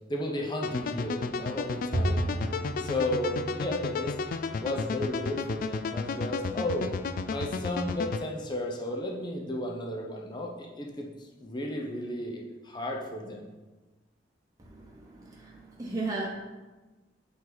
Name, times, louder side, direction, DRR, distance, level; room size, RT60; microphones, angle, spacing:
voice 1, 0.1-2.3 2.8-4.2 4.6-6.9 7.3-13.5, left 1 dB, 25° left, -1 dB, 0.7 m, -33 dB
sound 1, 0.6-8.2, left 4 dB, 45° left, 0.3 m, -33 dB
Bowed string instrument, 1.9-5.3, right 1 dB, 40° right, 1.2 m, -34 dB
voice 2, 14.6-16.3, right 3 dB, 20° right, -4 dB, 1.0 m, -36 dB
8.4 x 4.5 x 4.0 m, 1.2 s
head